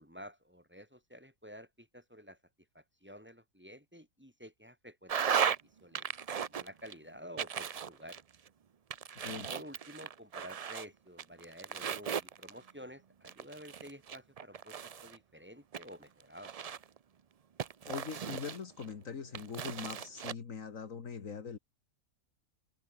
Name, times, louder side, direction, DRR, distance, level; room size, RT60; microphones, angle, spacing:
voice 1, 0.0-2.4 2.7-6.1 6.5-8.2 9.5-16.5, equal, 10° right, 4.0 m, -51 dB
sound 1, 5.1-5.6 5.9-6.9 7.4-8.5 8.9-10.9 11.2-12.7 13.2-15.2 15.7-17.0 17.6-18.9 19.3-20.3, right 7 dB, 55° right, 0.4 m, -36 dB
voice 2, 9.2-9.5 17.9-21.6, left 6 dB, 70° left, 2.0 m, -42 dB
open air
omnidirectional pair, 1.5 m